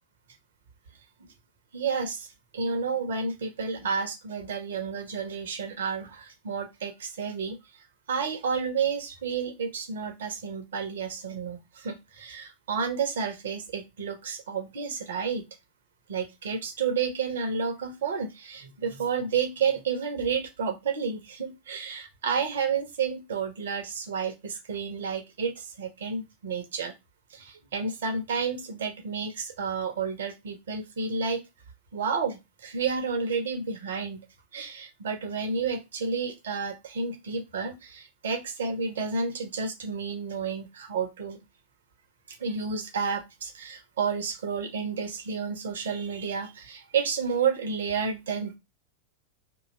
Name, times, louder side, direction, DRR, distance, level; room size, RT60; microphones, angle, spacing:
voice 1, 1.7-2.3 2.5-7.6 8.1-15.4 16.1-26.9 27.3-31.4 31.9-34.2 34.5-41.4 42.4-48.6, right 5 dB, 60° right, 6 dB, 0.7 m, -31 dB
2.7 x 2.3 x 4.0 m, 0.23 s
figure-of-eight pair, 90°, 0 cm